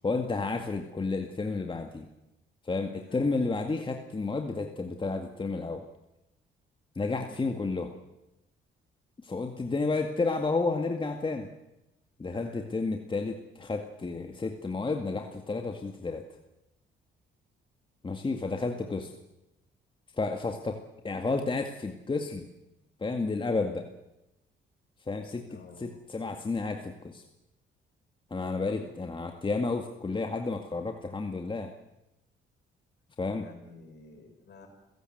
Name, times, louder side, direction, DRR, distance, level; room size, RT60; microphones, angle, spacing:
voice 1, 0.0-2.1 2.6-5.8 7.0-7.9 9.2-11.5 12.2-16.2 18.0-19.1 20.2-20.8 21.0-22.5 23.0-23.9 25.1-27.2 28.3-31.7 33.2-33.5, left 3 dB, 25° left, 4 dB, 2.1 m, -31 dB
voice 2, 12.3-12.7 25.5-26.0 28.4-28.9 33.2-34.7, left 4 dB, 60° left, 4 dB, 7.0 m, -50 dB
29.5 x 17.0 x 8.0 m, 0.94 s
cardioid pair, 90°, 20 cm